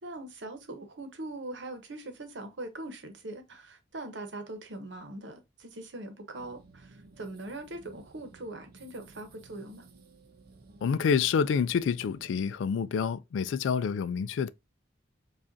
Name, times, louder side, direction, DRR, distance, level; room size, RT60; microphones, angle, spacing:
voice 1, 0.0-9.9, right 2 dB, 75° right, 1.0 m, -41 dB
sound 1, 6.3-12.6, right 3 dB, 55° right, 0.6 m, -55 dB
voice 2, 10.8-14.5, left 6 dB, 85° left, 0.3 m, -28 dB
4.9 x 2.4 x 2.6 m
head